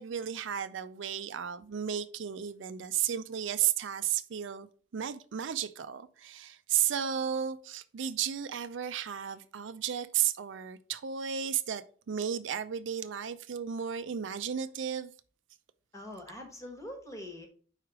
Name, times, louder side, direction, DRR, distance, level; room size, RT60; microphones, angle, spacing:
voice 1, 0.0-4.7 4.9-15.1, right 9 dB, 70° right, 0.4 m, -33 dB
voice 2, 15.9-17.5, left 1 dB, 15° left, 1.3 m, -43 dB
4.8 x 4.7 x 4.7 m
head